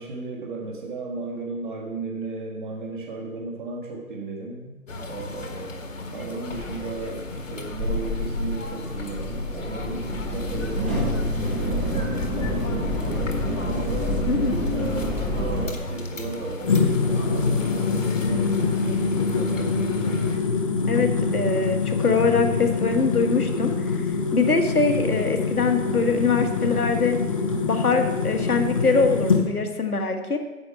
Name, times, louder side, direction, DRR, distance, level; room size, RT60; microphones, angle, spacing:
voice 1, 0.0-4.8 5.1-5.7 6.1-14.3 14.7-19.8, right 3 dB, 30° right, -1 dB, 1.8 m, -35 dB
sound 1, 4.9-20.4, left 2 dB, 55° left, 1.5 m, -35 dB
sound 2, 6.5-15.6, left 1 dB, 10° right, 0.8 m, -28 dB
voice 2, 14.3-14.6 20.8-23.7 24.3-27.2 27.6-30.4, left 4 dB, 70° left, 5 dB, 1.5 m, -23 dB
sound 3, 16.6-29.4, left 4 dB, 20° left, 0.8 m, -24 dB
9.8 x 7.8 x 5.6 m, 1.1 s
figure-of-eight pair, 140°, 45 cm